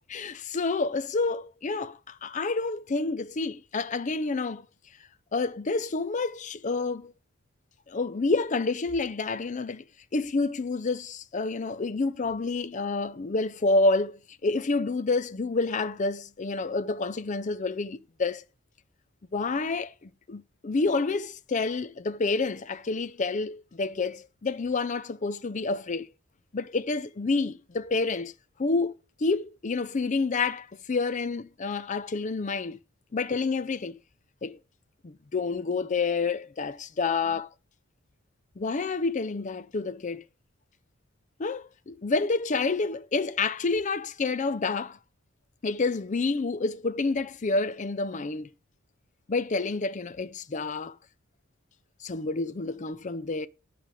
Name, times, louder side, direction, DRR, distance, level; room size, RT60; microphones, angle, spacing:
voice 1, 0.1-4.7 5.3-7.1 7.9-9.8 10.1-18.4 19.3-26.1 26.5-28.3 28.6-32.8 33.1-34.0 34.4-34.6 35.0-37.5 38.6-40.2 41.4-45.0 45.6-48.5 49.3-51.0 52.0-53.5, left 3 dB, 35° left, 0.5 m, -28 dB
10.0 x 5.0 x 4.9 m
head